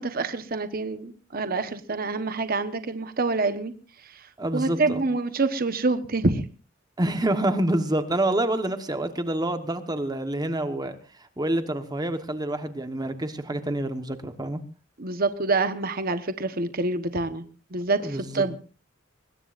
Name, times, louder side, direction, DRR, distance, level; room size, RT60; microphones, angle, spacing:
voice 1, 0.0-3.7 4.1-4.2 4.5-6.5 15.0-17.4 17.7-18.6, right 3 dB, 50° right, 10 dB, 1.2 m, -26 dB
voice 2, 4.4-5.0 7.0-14.6 18.0-18.4, right 1 dB, 20° right, 9 dB, 1.2 m, -27 dB
24.0 x 21.0 x 2.6 m, 0.35 s
head